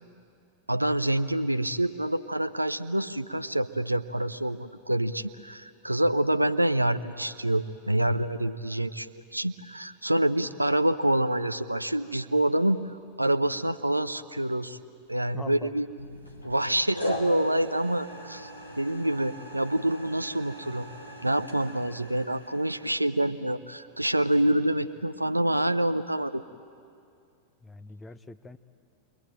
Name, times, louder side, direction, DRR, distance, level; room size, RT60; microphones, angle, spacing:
voice 1, 0.7-12.8 13.2-14.8 15.1-15.9 16.4-18.5 18.8-20.9 21.2-26.4, right 1 dB, 85° right, 13 dB, 0.7 m, -27 dB
voice 2, 15.3-15.8 27.6-28.6, left 3 dB, 10° left, 10 dB, 0.9 m, -43 dB
sound 1, 15.9-16.6 16.9-22.9, equal, 85° left, 2.7 m, -38 dB
28.5 x 23.0 x 9.1 m, 2.4 s
figure-of-eight pair, 90°, 0 cm